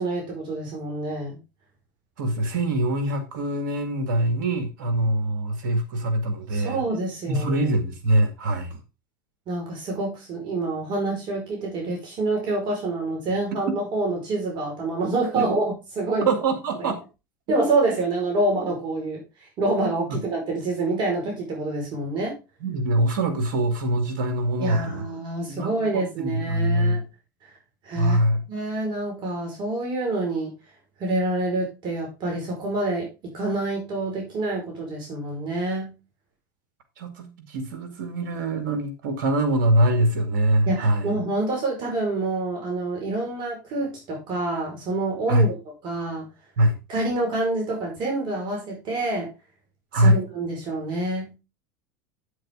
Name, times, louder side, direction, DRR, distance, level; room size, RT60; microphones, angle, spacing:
voice 1, 0.0-1.4 6.5-7.7 9.5-16.3 17.5-19.2 19.6-22.3 24.6-27.0 27.8-28.2 28.5-30.5 31.0-33.1 33.3-35.9 40.7-45.5 45.8-46.3 46.9-49.3 49.9-51.3, right 2 dB, 45° right, 5.1 m, -27 dB
voice 2, 2.2-6.8 7.3-8.8 13.5-13.8 15.4-15.5 16.3-17.0 20.1-20.2 22.6-25.1 25.5-27.0 28.0-28.5 37.0-41.1 45.3-45.5 46.6-46.8 49.9-50.2, right 1 dB, 75° right, 2.3 m, -23 dB
8.6 x 7.9 x 3.7 m
hypercardioid pair, 95°, 11 cm